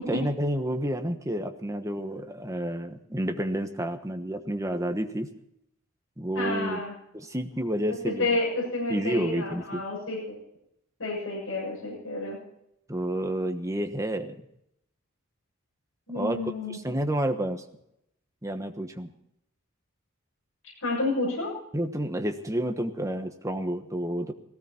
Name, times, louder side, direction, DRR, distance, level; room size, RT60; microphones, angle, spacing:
voice 1, 0.0-5.3 6.2-6.8 7.1-8.3 8.9-9.8 12.9-14.4 16.1-16.4 16.7-17.6 18.4-19.1 21.7-24.3, right 1 dB, 15° right, 6 dB, 1.2 m, -30 dB
voice 2, 6.3-6.9 8.0-10.2 11.0-12.4 16.1-16.8 20.8-21.6, left 2 dB, 65° left, -5 dB, 7.5 m, -30 dB
18.0 x 16.5 x 4.4 m, 0.77 s
head